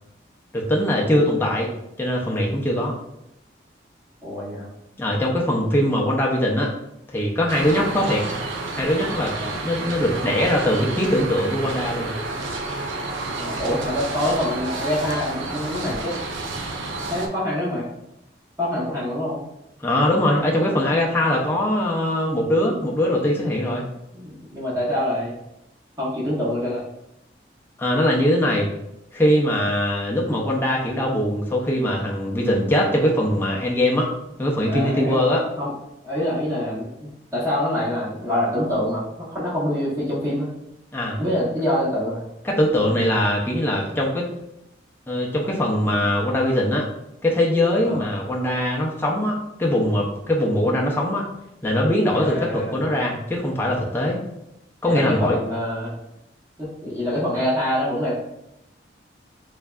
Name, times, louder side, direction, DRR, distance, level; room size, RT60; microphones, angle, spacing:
voice 1, 0.5-1.7 2.0-2.9 5.0-6.7 7.1-8.3 8.7-9.3 9.6-12.1 19.8-23.8 27.8-28.7 29.1-34.1 34.4-35.4 40.9-41.2 42.4-44.3 45.1-46.9 47.2-51.3 51.6-54.2 54.8-55.4, left 1 dB, 10° left, -3 dB, 0.5 m, -21 dB
voice 2, 4.2-4.7 9.4-9.6 13.4-16.2 17.1-17.9 18.6-19.4 24.1-25.3 26.0-26.8 34.7-35.2 35.6-35.7 36.0-40.5 41.2-42.2 47.8-48.1 52.1-52.9 54.8-55.9 56.6-58.1, left 1 dB, 15° right, -9 dB, 0.9 m, -25 dB
sound 1, 7.5-17.3, right 2 dB, 85° right, 0.5 m, -30 dB
3.5 x 3.2 x 2.3 m, 0.84 s
head